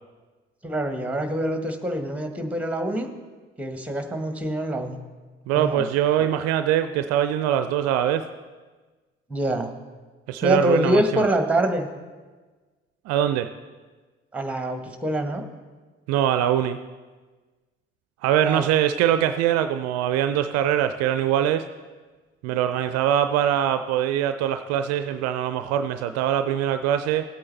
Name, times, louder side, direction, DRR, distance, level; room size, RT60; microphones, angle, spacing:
voice 1, 0.6-3.1 3.6-5.0 5.5-5.8 9.3-9.7 10.4-11.9 14.3-15.4 18.4-18.6, right 1 dB, 5° right, 6 dB, 1.2 m, -25 dB
voice 2, 5.5-8.2 10.3-11.2 13.1-13.5 16.1-16.8 18.2-21.6 22.4-27.2, right 10 dB, 55° right, 10 dB, 0.5 m, -23 dB
15.5 x 8.6 x 3.3 m, 1.3 s
figure-of-eight pair, 45°, 31 cm